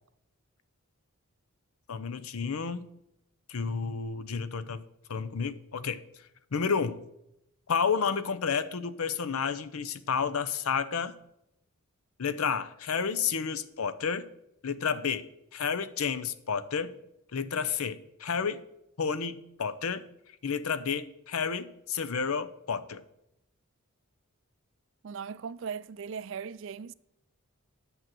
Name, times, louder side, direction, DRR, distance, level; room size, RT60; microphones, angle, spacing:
voice 1, 1.9-2.9 3.5-4.8 5.1-7.0 7.7-11.2 12.2-14.3 14.6-15.3 15.5-16.9 17.3-18.6 19.0-20.0 20.4-23.0, left 6 dB, 85° left, 0.6 m, -31 dB
voice 2, 25.0-26.9, right 6 dB, 60° right, 0.4 m, -38 dB
9.2 x 6.3 x 7.5 m
head